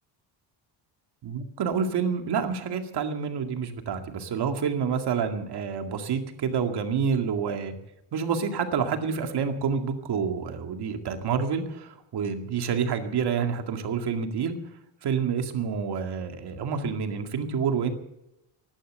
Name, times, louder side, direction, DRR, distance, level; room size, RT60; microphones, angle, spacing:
voice 1, 1.2-7.7 8.1-14.5 15.0-17.9, right 6 dB, 60° right, 5 dB, 2.2 m, -28 dB
16.0 x 11.5 x 7.9 m, 0.86 s
cardioid pair, 135°, 45 cm